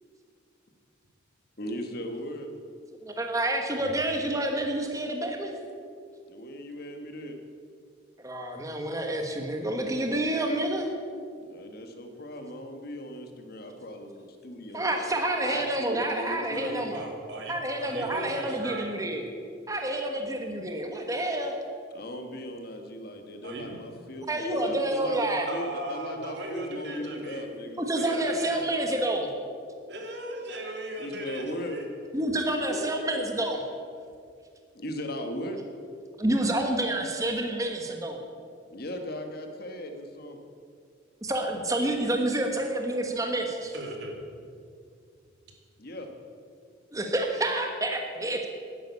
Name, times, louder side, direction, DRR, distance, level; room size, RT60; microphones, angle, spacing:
voice 1, 1.6-2.5 6.3-7.4 11.3-15.0 15.4-16.9 21.9-27.8 31.0-31.7 34.7-35.6 38.7-40.4 45.8-46.1, equal, 50° left, 5 dB, 1.5 m, -38 dB
voice 2, 3.0-5.5 8.2-10.9 14.7-17.0 17.5-19.2 19.7-21.6 24.3-25.5 27.8-29.3 32.1-33.6 36.2-38.2 41.2-43.7 46.9-48.5, right 1 dB, 15° right, 3 dB, 1.4 m, -28 dB
voice 3, 16.5-18.8 23.4-23.8 25.5-27.5 27.9-28.6 29.9-31.9 32.7-32.9 43.7-44.2, right 1 dB, 60° right, 1 dB, 2.7 m, -38 dB
11.5 x 10.5 x 8.3 m, 2.3 s
head